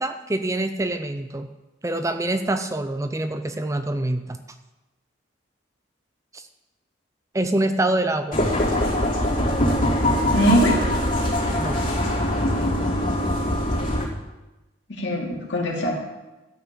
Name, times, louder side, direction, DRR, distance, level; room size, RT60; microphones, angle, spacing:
voice 1, 0.0-1.5 1.8-4.4 6.3-6.4 7.3-8.4 11.5-11.8, right 1 dB, 15° right, 8 dB, 0.5 m, -25 dB
sound 1, 8.3-14.1, left 1 dB, 45° left, 3.2 m, -22 dB
voice 2, 10.3-10.8 14.9-15.9, equal, 70° left, -2 dB, 2.7 m, -21 dB
13.0 x 5.8 x 7.5 m, 1.0 s
head